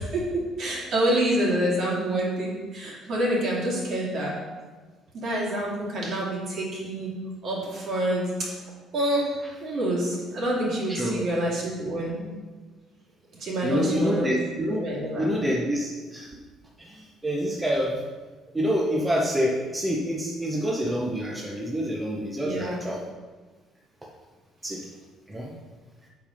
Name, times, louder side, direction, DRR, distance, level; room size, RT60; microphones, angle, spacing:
voice 1, 0.0-4.3 5.1-7.1 7.4-8.2 8.9-9.3 9.6-12.2 13.4-14.3 14.8-15.3 22.4-22.8, right 1 dB, 50° right, -4 dB, 2.7 m, -27 dB
voice 2, 10.9-11.3 13.6-14.8 15.2-16.3 16.8-18.0 18.5-23.0 24.6-24.8 25.3-25.5, equal, 10° right, -3 dB, 0.9 m, -27 dB
7.8 x 5.2 x 5.3 m, 1.4 s
cardioid pair, 145°, 0 cm